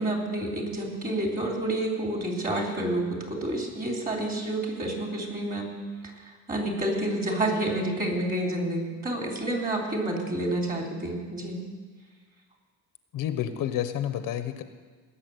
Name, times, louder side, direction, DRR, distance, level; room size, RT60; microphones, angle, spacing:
voice 1, 0.0-5.7 6.0-6.1 6.5-11.6, right 1 dB, 25° right, 1 dB, 3.4 m, -29 dB
voice 2, 13.1-14.6, left 10 dB, 70° left, 10 dB, 1.1 m, -29 dB
18.5 x 7.4 x 9.2 m, 1.5 s
cardioid pair, 130°, 34 cm